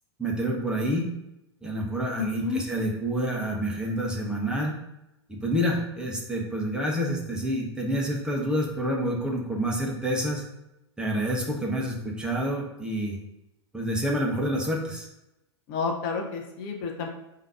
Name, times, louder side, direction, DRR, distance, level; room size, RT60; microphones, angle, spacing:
voice 1, 0.2-1.0 1.6-4.8 5.3-10.4 11.0-13.2 13.7-15.1, equal, 5° right, -2 dB, 1.0 m, -28 dB
voice 2, 2.2-2.7 15.7-17.1, left 5 dB, 40° left, 2 dB, 0.6 m, -30 dB
3.7 x 2.8 x 4.8 m, 0.91 s
figure-of-eight pair, 95°, 15 cm